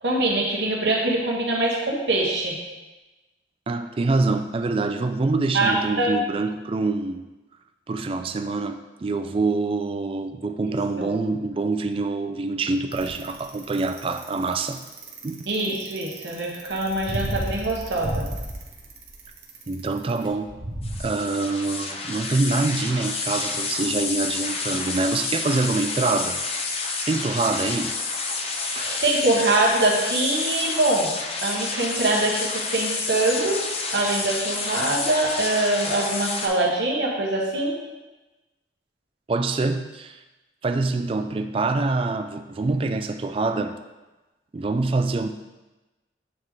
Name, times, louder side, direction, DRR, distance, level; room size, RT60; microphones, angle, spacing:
voice 1, 0.0-2.5 5.5-6.1 10.7-11.1 15.5-18.3 28.8-31.1 31.4-33.7 33.9-37.8, right 2 dB, 80° right, -2 dB, 1.2 m, -23 dB
voice 2, 3.7-7.2 7.9-14.8 15.2-15.4 19.7-20.5 21.0-26.4 27.1-27.9 28.7-28.8 39.3-40.2 40.6-43.8 44.5-45.3, right 3 dB, 30° right, 8 dB, 0.3 m, -25 dB
Bicycle, 12.9-21.0, right 1 dB, 55° right, 1.0 m, -33 dB
sound 1, 20.8-36.5, left 4 dB, 35° left, 0.5 m, -29 dB
8.6 x 3.6 x 3.2 m, 1.1 s
head